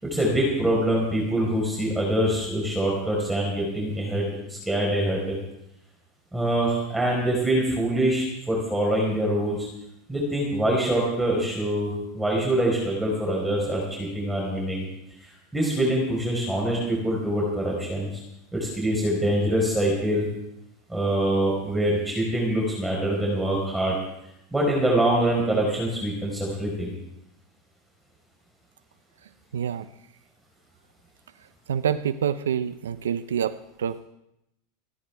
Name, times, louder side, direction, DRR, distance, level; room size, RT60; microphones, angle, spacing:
voice 1, 0.0-5.4 6.3-9.7 10.1-14.9 15.5-18.1 18.5-20.3 20.9-23.9 24.5-26.9, right 1 dB, 5° right, -2 dB, 4.5 m, -24 dB
voice 2, 29.5-29.9 31.7-34.0, right 8 dB, 85° right, 13 dB, 0.6 m, -27 dB
29.5 x 10.0 x 3.5 m, 0.84 s
hypercardioid pair, 105°, 0 cm